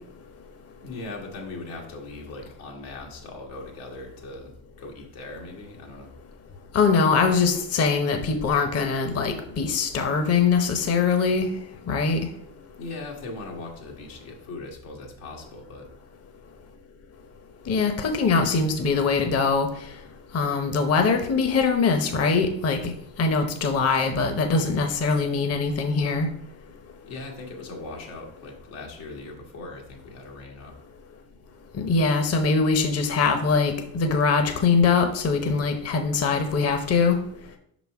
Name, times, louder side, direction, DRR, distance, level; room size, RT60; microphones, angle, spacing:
voice 1, 0.8-4.5 4.8-6.1 12.8-15.9 27.0-30.7, left 2 dB, 80° left, 0 dB, 1.7 m, -39 dB
voice 2, 6.7-11.5 11.9-12.2 17.7-19.7 20.3-22.9 23.2-26.3 31.8-37.2, left 4 dB, 35° left, 6 dB, 0.9 m, -22 dB
5.3 x 4.1 x 4.6 m, 0.69 s
supercardioid pair, 80°, 42 cm